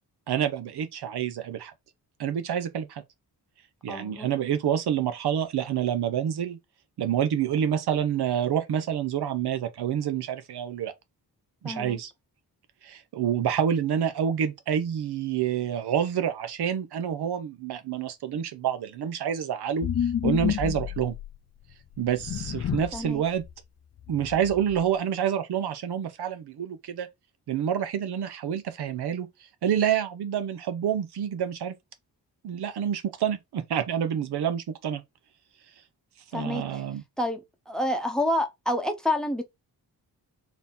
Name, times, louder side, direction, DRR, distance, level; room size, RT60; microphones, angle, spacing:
voice 1, 0.3-1.7 2.2-3.0 3.8-6.6 7.0-10.9 11.6-12.1 12.8-21.1 22.0-23.4 24.1-27.1 27.5-29.3 29.6-31.7 32.4-35.0 36.3-37.0, right 9 dB, 80° right, 0.9 m, -28 dB
voice 2, 3.9-4.3 11.6-12.0 22.9-23.2 36.3-36.6 37.2-37.4 37.7-39.4, left 1 dB, ahead, 0.8 m, -28 dB
sound 1, 19.8-21.4 22.0-23.0 23.4-23.5 24.0-24.8, left 10 dB, 45° left, 0.4 m, -30 dB
4.0 x 2.8 x 3.6 m
wide cardioid pair, 110°, 39 cm